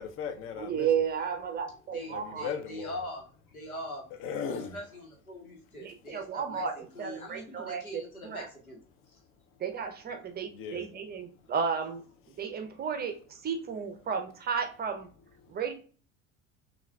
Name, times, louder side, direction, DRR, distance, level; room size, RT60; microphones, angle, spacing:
voice 1, 0.0-0.9 2.1-2.9 4.1-4.8 10.5-10.8, left 7 dB, 30° left, 0.6 m, -37 dB
voice 2, 0.6-2.5 5.8-8.5 9.6-15.1 15.5-15.7, right 6 dB, 25° right, 0.6 m, -33 dB
voice 3, 1.9-3.2 3.5-4.0 4.7-8.8 10.9-11.0, left 1 dB, 85° left, 1.1 m, -42 dB
5.5 x 2.4 x 2.2 m
figure-of-eight pair, 70°, 42 cm